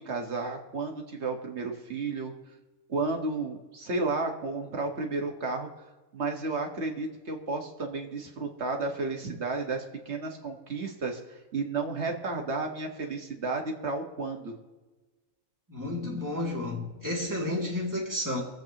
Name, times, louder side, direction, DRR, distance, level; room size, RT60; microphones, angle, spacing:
voice 1, 0.0-2.3 2.9-5.7 6.1-14.5, right 3 dB, 55° right, 1.8 m, -32 dB
voice 2, 15.7-18.4, left 1 dB, 15° right, 2.5 m, -31 dB
23.5 x 8.0 x 2.9 m
omnidirectional pair, 1.4 m